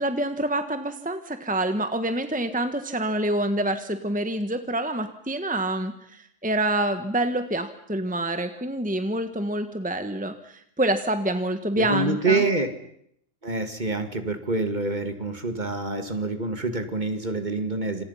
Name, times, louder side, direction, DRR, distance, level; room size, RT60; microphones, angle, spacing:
voice 1, 0.0-12.4, right 1 dB, 5° right, 8 dB, 1.4 m, -27 dB
voice 2, 11.8-12.7 13.4-18.0, right 2 dB, 35° right, 8 dB, 2.3 m, -26 dB
28.5 x 27.0 x 5.7 m, 0.69 s
omnidirectional pair, 1.3 m